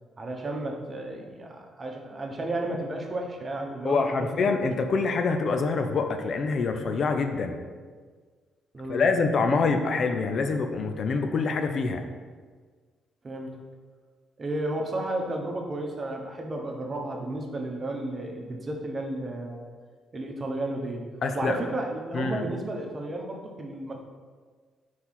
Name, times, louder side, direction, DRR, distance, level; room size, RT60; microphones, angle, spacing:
voice 1, 0.2-4.5 8.7-9.1 13.2-13.6 14.4-19.7 20.1-21.1 21.3-24.0, right 1 dB, 35° right, 1 dB, 1.0 m, -33 dB
voice 2, 3.8-7.6 8.9-12.0 21.2-21.6 22.1-22.4, left 4 dB, 55° left, 6 dB, 0.5 m, -25 dB
4.6 x 4.2 x 5.7 m, 1.5 s
cardioid pair, 90°, 0 cm